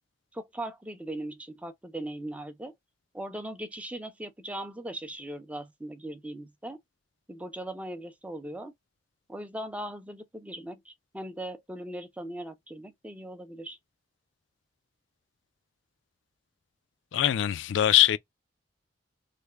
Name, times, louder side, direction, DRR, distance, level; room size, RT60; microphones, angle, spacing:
voice 1, 0.3-2.7 3.1-6.8 7.3-8.7 9.3-13.8, right 1 dB, 5° right, 0.5 m, -39 dB
voice 2, 17.1-18.2, left 12 dB, 70° left, 0.3 m, -22 dB
3.3 x 2.1 x 3.3 m
head